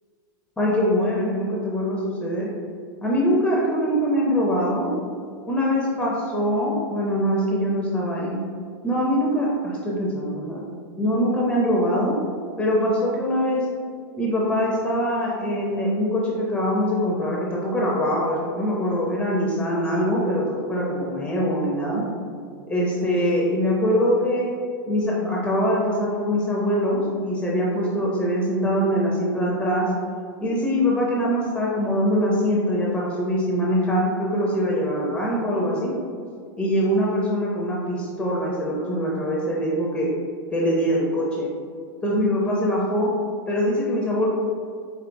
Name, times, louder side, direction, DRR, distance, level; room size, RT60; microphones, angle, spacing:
voice 1, 0.6-2.5 3.0-4.9 5.5-8.4 8.8-10.6 11.0-12.1 12.6-13.7 14.2-22.0 22.7-24.5 24.9-29.9 30.4-35.9 36.6-40.1 40.5-41.5 42.0-43.1 43.5-44.3, equal, 10° left, -4 dB, 0.4 m, -23 dB
4.4 x 3.3 x 2.5 m, 2.2 s
supercardioid pair, 150°, 12 cm